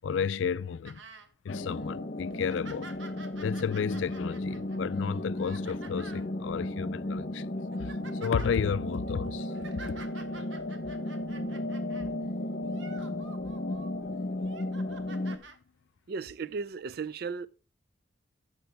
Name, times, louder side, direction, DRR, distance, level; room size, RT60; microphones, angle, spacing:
voice 1, 0.0-1.0 1.4-2.9 3.4-7.5 7.8-9.8, left 6 dB, 75° left, 0.4 m, -32 dB
sound 1, 0.9-1.3 1.8-1.9 2.3-6.3 7.0-7.2 7.6-8.5 9.3-12.1 12.6-13.9 14.4-15.6 16.5-16.6, right 4 dB, 75° right, 1.3 m, -50 dB
sound 2, 1.5-15.4, left 1 dB, 45° left, 1.0 m, -34 dB
voice 2, 16.1-17.5, right 5 dB, 55° right, 0.4 m, -35 dB
12.0 x 7.3 x 3.4 m
head